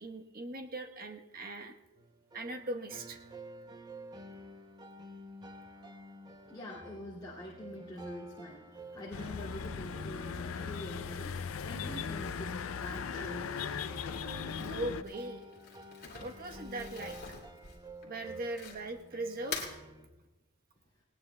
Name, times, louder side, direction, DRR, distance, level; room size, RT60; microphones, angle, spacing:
voice 1, 0.0-1.7 2.3-3.2 14.6-15.4 16.2-17.4 18.0-19.6, right 2 dB, 40° right, 4 dB, 1.1 m, -40 dB
sound 1, 2.0-20.1, right 1 dB, 20° right, 0.7 m, -51 dB
voice 2, 6.5-14.0, left 1 dB, 20° left, -9 dB, 2.3 m, -45 dB
sound 2, 9.1-15.0, left 6 dB, 65° left, 0.5 m, -38 dB
Crumpling crinkling, 14.4-19.0 19.4-19.8, left 5 dB, 45° left, 2.6 m, -44 dB
19.0 x 19.0 x 2.2 m, 1.1 s
head